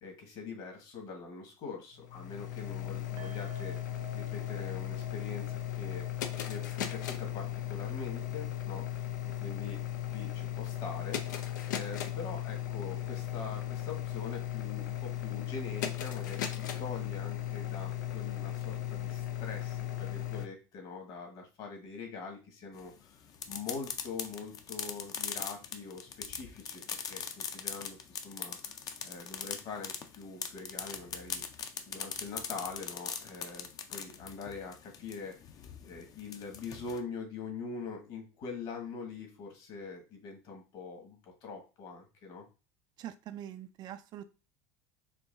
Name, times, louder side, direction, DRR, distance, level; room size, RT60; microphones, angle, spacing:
voice 1, 0.0-3.8 4.1-6.1 6.5-9.8 10.1-11.4 11.7-23.1 23.5-26.8 27.1-28.6 29.0-31.4 31.9-35.4 35.8-42.5, left 4 dB, 55° left, 2 dB, 1.8 m, -43 dB
sound 1, 2.0-20.5, left 12 dB, 90° left, 0.5 m, -37 dB
sound 2, 3.2-10.4 10.6-10.8 11.2-11.3, right 6 dB, 70° right, 1.0 m, -55 dB
sound 3, 22.8-37.0, left 7 dB, 40° left, 0.6 m, -41 dB
voice 2, 43.0-44.2, right 11 dB, 45° right, 10 dB, 0.4 m, -43 dB
4.5 x 2.7 x 2.7 m, 0.31 s
supercardioid pair, 100°, 10 cm